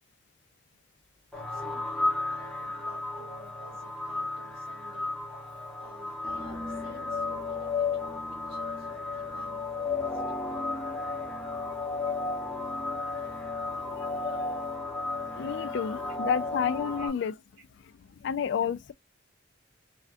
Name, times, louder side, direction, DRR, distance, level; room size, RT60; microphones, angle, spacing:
voice 1, 1.0-10.4 10.8-11.0 11.9-12.2 13.0-13.2 14.1-14.7 15.7-16.5 17.0-17.1, right 2 dB, 55° right, 1.9 m, -54 dB
sound 1, 1.3-17.1, left 3 dB, 5° left, 0.8 m, -33 dB
voice 2, 14.0-14.4 15.4-17.3 18.2-18.9, left 7 dB, 60° left, 0.3 m, -30 dB
3.3 x 2.4 x 2.4 m
head